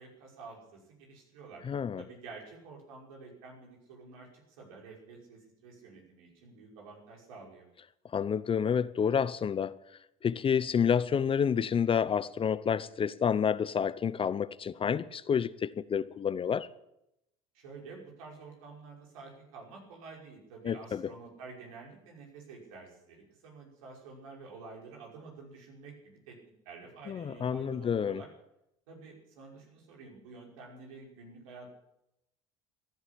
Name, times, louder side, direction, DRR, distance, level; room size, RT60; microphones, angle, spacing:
voice 1, 0.0-1.6 2.0-7.7 17.5-26.4 26.7-28.3 28.9-31.7, right 4 dB, 80° right, 5.7 m, -49 dB
voice 2, 1.6-2.0 8.1-9.8 10.2-16.7 20.6-21.0 27.1-28.2, left 7 dB, 30° left, 0.7 m, -29 dB
15.0 x 11.0 x 8.5 m
hypercardioid pair, 80°, 18 cm